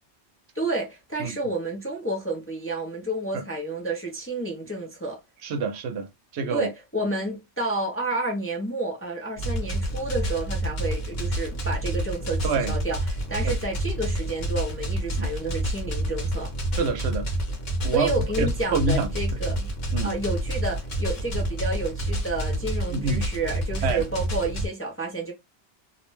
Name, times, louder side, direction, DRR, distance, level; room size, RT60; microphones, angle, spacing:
voice 1, 0.5-5.2 6.5-16.5 17.9-19.7 20.0-25.3, right 2 dB, 20° left, 0.4 m, -30 dB
voice 2, 5.4-6.1 6.3-6.7 12.4-12.7 13.4-13.6 15.2-15.3 16.8-17.3 17.8-18.1 18.4-19.1 19.9-20.1 22.9-23.2 23.8-24.0, right 4 dB, 80° right, 0.9 m, -26 dB
sound 1, 9.4-24.7, right 1 dB, 65° left, 1.1 m, -28 dB
2.5 x 2.1 x 3.0 m
omnidirectional pair, 1.1 m